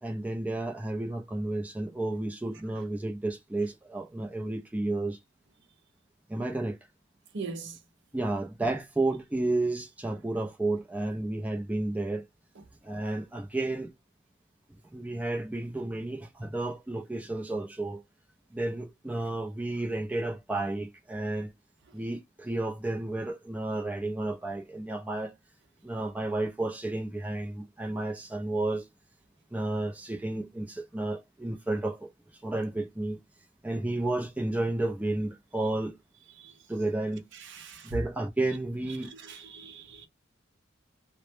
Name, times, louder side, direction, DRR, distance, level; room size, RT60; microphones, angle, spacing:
voice 1, 0.0-5.2 6.3-6.8 8.1-12.2 12.8-13.9 14.9-18.0 18.5-21.5 21.9-25.3 25.8-28.9 29.5-32.1 32.4-33.2 33.6-36.0 36.7-37.2 37.8-39.1, right 2 dB, 10° right, 0.4 m, -32 dB
voice 2, 7.3-7.8 36.4-36.5 37.5-37.9 39.1-40.1, right 4 dB, 65° right, 0.6 m, -41 dB
2.0 x 2.0 x 3.0 m
head